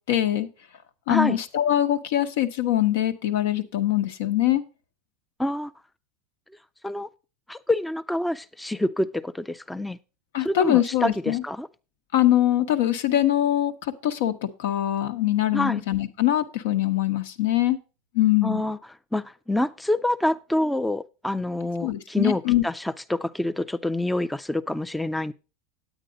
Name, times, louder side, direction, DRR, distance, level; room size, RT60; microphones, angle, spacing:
voice 1, 0.1-0.5 1.1-4.6 10.3-11.4 12.1-17.8 18.1-18.6 21.8-22.6, left 13 dB, 80° left, 9 dB, 1.0 m, -23 dB
voice 2, 1.1-1.4 5.4-5.7 6.8-7.1 7.5-10.0 10.4-11.7 15.5-15.8 18.4-18.8 19.1-25.3, left 1 dB, 5° left, 11 dB, 0.4 m, -27 dB
9.0 x 9.0 x 3.9 m, 0.31 s
supercardioid pair, 125°, 0 cm